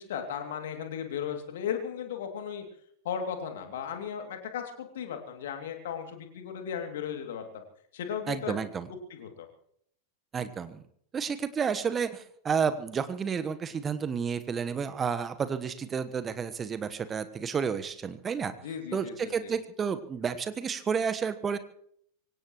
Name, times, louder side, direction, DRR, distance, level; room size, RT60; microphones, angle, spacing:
voice 1, 0.0-2.6 3.0-7.6 7.9-8.5 9.1-9.5 18.6-19.5, left 8 dB, 60° left, 5 dB, 2.7 m, -36 dB
voice 2, 8.3-8.9 10.3-10.8 11.1-18.5 18.9-21.6, right 6 dB, 20° right, 12 dB, 1.2 m, -31 dB
24.5 x 17.5 x 3.1 m, 0.67 s
figure-of-eight pair, 90°, 0 cm